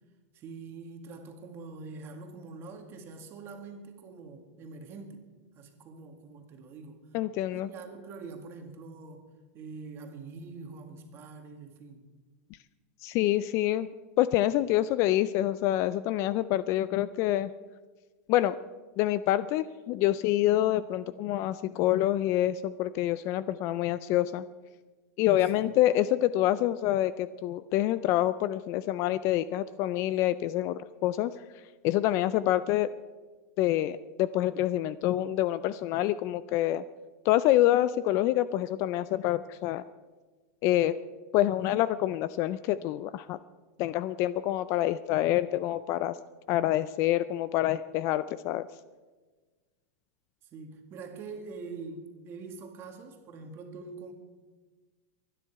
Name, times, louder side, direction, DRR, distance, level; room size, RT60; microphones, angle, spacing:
voice 1, 0.3-5.2 5.5-7.0 7.5-9.3 9.5-12.0 25.4-25.7 50.5-54.1, right 4 dB, 30° right, 4 dB, 2.0 m, -44 dB
voice 2, 7.1-7.7 13.0-13.9 14.2-17.5 18.3-18.5 19.0-24.4 25.2-31.3 31.8-32.9 33.6-36.8 37.3-39.8 40.6-41.0 41.3-43.4 43.8-46.2 46.5-48.7, left 14 dB, 35° left, 16 dB, 0.3 m, -26 dB
24.0 x 10.0 x 4.7 m, 1.3 s
supercardioid pair, 160°, 8 cm